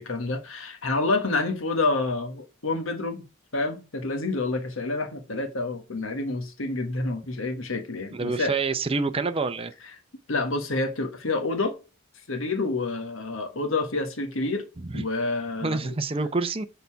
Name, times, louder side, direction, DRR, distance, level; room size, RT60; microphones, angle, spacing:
voice 1, 0.0-3.2 3.5-8.5 10.3-11.8 12.3-14.7 14.9-15.9, left 3 dB, 65° left, 1.3 m, -28 dB
voice 2, 8.1-9.7 14.8-15.0 15.6-16.7, right 3 dB, 25° right, 0.6 m, -27 dB
6.5 x 4.0 x 5.6 m
head